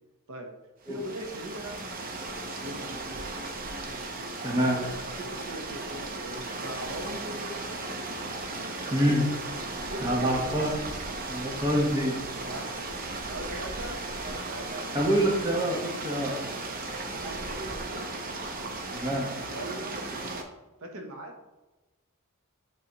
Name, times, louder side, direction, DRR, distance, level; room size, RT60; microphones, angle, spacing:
sound 1, 0.8-20.4, right 2 dB, 40° right, 0.7 m, -36 dB
voice 1, 0.8-1.8 2.6-3.3 4.6-4.9 5.2-7.9 9.9-10.6 12.4-13.0 13.3-14.9 16.2-16.6 17.2-18.1 19.5-20.0 20.8-21.4, right 1 dB, 65° right, 2 dB, 0.9 m, -40 dB
voice 2, 4.4-4.8 8.9-9.3 10.0-10.8 11.3-12.1 14.9-16.3 18.9-19.3, equal, 20° right, -2 dB, 1.2 m, -26 dB
8.4 x 4.0 x 3.0 m, 1.1 s
head